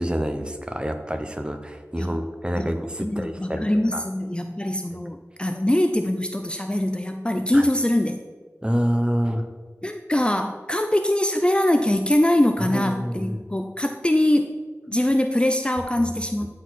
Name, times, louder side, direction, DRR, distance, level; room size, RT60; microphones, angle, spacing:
voice 1, 0.0-4.0 7.5-7.7 8.6-9.5 12.6-13.5 16.0-16.1, equal, 20° right, 6 dB, 0.9 m, -27 dB
voice 2, 3.0-8.2 9.8-14.5 14.9-16.5, left 1 dB, 20° left, 6 dB, 0.5 m, -23 dB
12.0 x 4.7 x 4.2 m, 1.4 s
wide cardioid pair, 45°, 5 cm